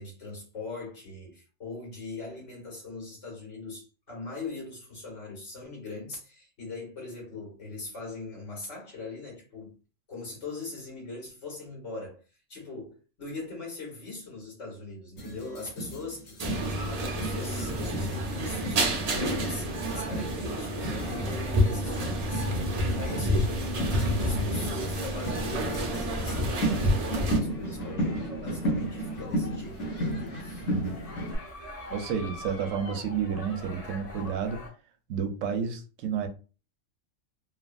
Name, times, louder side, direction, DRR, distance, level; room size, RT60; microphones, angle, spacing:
voice 1, 0.0-9.8 10.1-12.2 12.5-22.7 23.0-23.6 24.0-30.7, left 3 dB, 65° left, 1.7 m, -41 dB
sound 1, 15.2-31.4, right 1 dB, 90° left, 1.2 m, -34 dB
sound 2, 16.4-27.4, equal, 55° right, 0.4 m, -29 dB
sound 3, 26.9-34.7, left 1 dB, 35° left, 0.8 m, -44 dB
voice 2, 30.6-31.0 31.9-34.6 35.1-36.3, right 7 dB, 80° right, 0.9 m, -31 dB
3.3 x 2.0 x 2.4 m
omnidirectional pair, 1.3 m